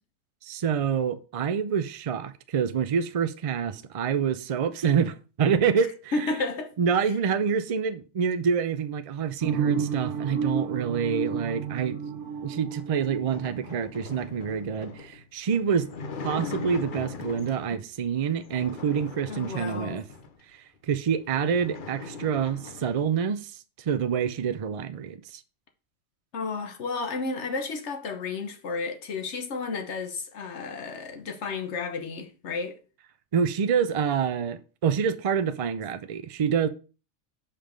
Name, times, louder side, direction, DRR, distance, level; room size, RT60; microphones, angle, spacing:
voice 1, 0.4-6.3 6.8-12.0 12.4-15.9 16.2-20.0 20.5-25.4 33.3-36.7, right 7 dB, 55° right, 0.3 m, -27 dB
voice 2, 6.1-6.7 19.3-20.0 26.3-32.8, left 4 dB, 75° left, 1.3 m, -32 dB
sound 1, 9.4-14.2, right 6 dB, 80° right, 1.5 m, -31 dB
sound 2, 12.6-17.8 18.3-20.4 20.9-21.0 21.2-23.1, left 4 dB, 50° left, 0.8 m, -40 dB
5.8 x 5.1 x 5.1 m
omnidirectional pair, 1.2 m